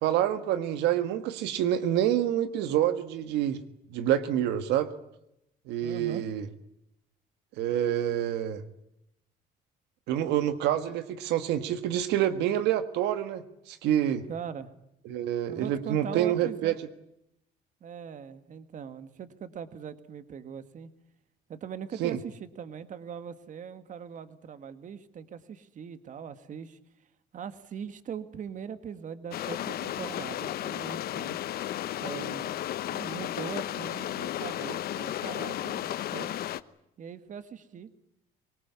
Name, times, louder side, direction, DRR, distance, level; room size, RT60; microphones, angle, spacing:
voice 1, 0.0-3.6 3.9-4.9 5.7-6.5 7.6-8.6 10.1-14.2 15.0-16.7 22.0-22.2, right 11 dB, 85° right, 10 dB, 1.7 m, -27 dB
voice 2, 5.8-6.2 14.3-14.7 15.5-16.8 17.8-20.9 21.5-26.8 27.3-31.4 32.0-32.5 32.9-36.3 37.0-37.9, right 7 dB, 50° right, 11 dB, 1.9 m, -41 dB
sound 1, 29.3-36.6, left 12 dB, 65° left, 1.0 m, -34 dB
24.5 x 19.5 x 9.7 m, 0.80 s
cardioid pair, 110°, 17 cm